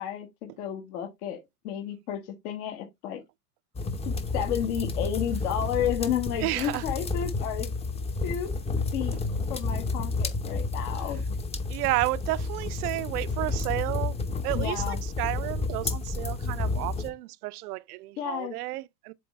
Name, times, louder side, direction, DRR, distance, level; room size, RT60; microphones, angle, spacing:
voice 1, 0.0-3.2 4.0-7.7 8.2-8.5 8.9-9.2 9.5-11.2 14.5-15.0 18.2-18.5, left 9 dB, 60° left, 1.6 m, -32 dB
sound 1, 3.7-17.1, left 3 dB, 15° left, 0.8 m, -31 dB
voice 2, 6.4-6.8 11.7-14.2 14.4-19.1, right 19 dB, 65° right, 0.7 m, -31 dB
7.6 x 3.8 x 3.2 m
hypercardioid pair, 120°, 49 cm